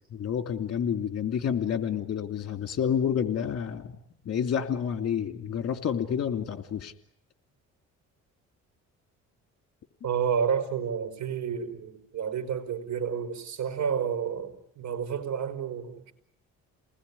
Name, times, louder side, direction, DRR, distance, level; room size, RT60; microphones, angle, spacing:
voice 1, 0.1-4.0 4.2-6.9, left 8 dB, 55° left, 8 dB, 2.8 m, -29 dB
voice 2, 10.0-16.1, right 7 dB, 70° right, 10 dB, 5.1 m, -30 dB
29.0 x 20.0 x 9.8 m, 0.74 s
cardioid pair, 90°, 30 cm